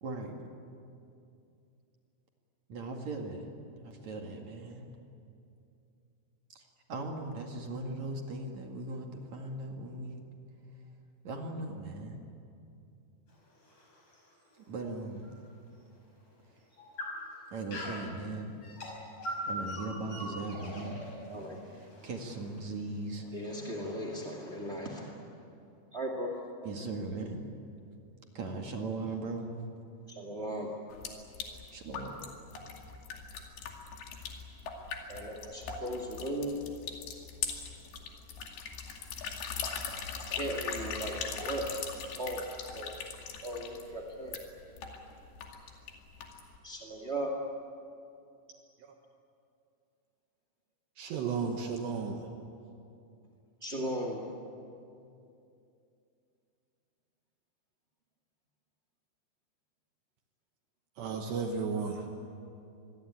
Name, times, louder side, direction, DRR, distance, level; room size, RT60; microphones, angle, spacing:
voice 1, 0.0-0.5 2.7-3.5 3.8-4.8 6.5-10.2 11.2-12.2 14.6-15.3 17.5-18.5 19.5-21.0 21.7-23.5 26.6-27.4 28.3-29.5 31.7-32.2, right 2 dB, 50° right, 2 dB, 2.6 m, -39 dB
sound 1, 13.3-15.4 15.8-15.9 16.6-18.1 18.6-22.9, left 1 dB, 45° left, 7.1 m, -42 dB
voice 2, 20.7-21.6 23.2-25.2 25.9-26.3 30.1-30.7 35.1-36.6 40.3-41.7 41.9-42.9 43.4-44.4 46.6-47.3 53.6-54.3, right 1 dB, 35° right, 0 dB, 1.0 m, -37 dB
sound 2, 30.9-46.6, left 6 dB, 70° left, 4.5 m, -41 dB
voice 3, 51.0-52.3 61.0-62.1, right 5 dB, 70° right, 2 dB, 3.5 m, -34 dB
26.0 x 22.0 x 8.9 m, 2.6 s
omnidirectional pair, 5.3 m